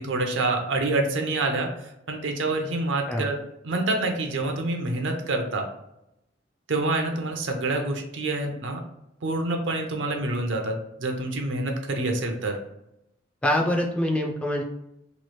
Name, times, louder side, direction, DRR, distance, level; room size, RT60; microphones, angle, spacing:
voice 1, 0.0-3.4 3.6-5.7 6.7-8.8 9.2-12.6, right 2 dB, 70° right, 3 dB, 0.6 m, -27 dB
voice 2, 13.4-14.6, left 1 dB, 5° left, 0 dB, 0.3 m, -24 dB
3.0 x 2.4 x 3.0 m, 0.84 s
head